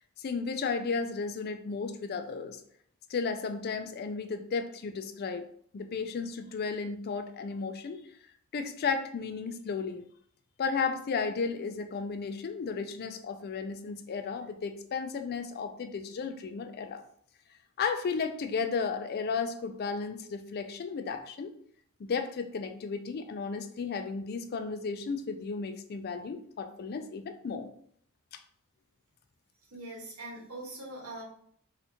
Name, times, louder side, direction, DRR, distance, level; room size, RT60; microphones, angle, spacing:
voice 1, 0.2-2.6 3.1-5.5 5.7-8.0 8.5-10.0 10.6-17.0 17.8-21.5 22.0-27.7, left 5 dB, 45° left, 8 dB, 0.4 m, -34 dB
voice 2, 29.6-31.2, right 2 dB, 90° right, -3 dB, 1.3 m, -42 dB
4.2 x 2.4 x 2.8 m, 0.62 s
head